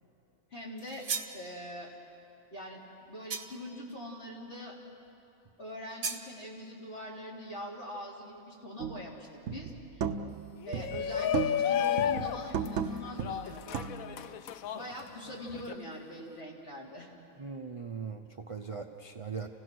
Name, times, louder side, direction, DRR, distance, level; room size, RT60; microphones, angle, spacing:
voice 1, 0.5-1.1 1.3-1.9 2.5-2.8 3.1-4.8 5.6-10.0 10.6-14.2 14.7-17.1, equal, 50° left, -5 dB, 3.8 m, -43 dB
sound 1, 0.8-1.4 3.3-3.7 6.0-6.3, right 5 dB, 85° right, 1.7 m, -36 dB
sound 2, 8.8-9.1 9.5-10.4 10.7-11.7 12.0-14.2, right 7 dB, 70° right, 1.1 m, -35 dB
voice 2, 10.1-10.4 17.4-19.5, right 5 dB, 30° right, 3 dB, 0.6 m, -40 dB
Shout, 10.6-15.7, left 9 dB, 85° left, 1.1 m, -33 dB
29.0 x 16.5 x 6.2 m, 3.0 s
omnidirectional pair, 1.4 m